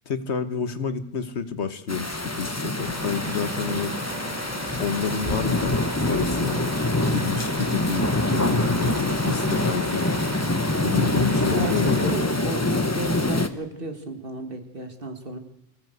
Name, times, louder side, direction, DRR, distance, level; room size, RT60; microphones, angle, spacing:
voice 1, 0.1-3.9 4.8-5.8 6.1-6.6 7.1-10.0 10.8-12.2, left 6 dB, 85° left, 10 dB, 1.6 m, -29 dB
sound 1, 1.9-13.5, left 2 dB, 15° left, 1.0 m, -25 dB
Truck, 2.8-12.1, right 2 dB, 40° right, 1.9 m, -37 dB
voice 2, 3.7-4.0 11.4-11.7 12.0-15.4, right 2 dB, 55° right, 7 dB, 2.2 m, -33 dB
25.0 x 16.0 x 8.0 m, 0.88 s
omnidirectional pair, 1.1 m